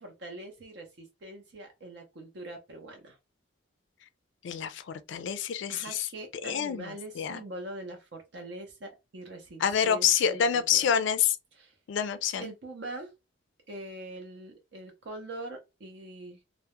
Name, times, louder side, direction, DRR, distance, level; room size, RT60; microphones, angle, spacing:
voice 1, 0.0-3.2 5.7-10.8 11.5-11.7 12.4-13.1 13.7-16.4, right 1 dB, 55° right, 0.5 m, -43 dB
voice 2, 4.4-6.1 6.4-7.4 9.6-11.4 11.9-12.5, left 8 dB, 65° left, 0.3 m, -27 dB
2.2 x 2.0 x 2.8 m
head